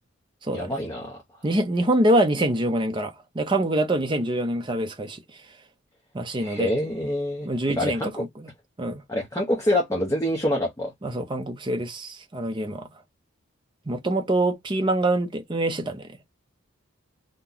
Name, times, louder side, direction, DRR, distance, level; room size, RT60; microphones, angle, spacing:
voice 1, 0.5-1.2 6.4-8.2 9.1-10.9, left 1 dB, 15° left, 0.9 m, -26 dB
voice 2, 1.4-5.2 6.1-6.7 7.4-8.5 8.8-9.0 11.0-12.9 13.9-16.1, right 1 dB, 20° right, 0.5 m, -25 dB
2.8 x 2.2 x 3.8 m
head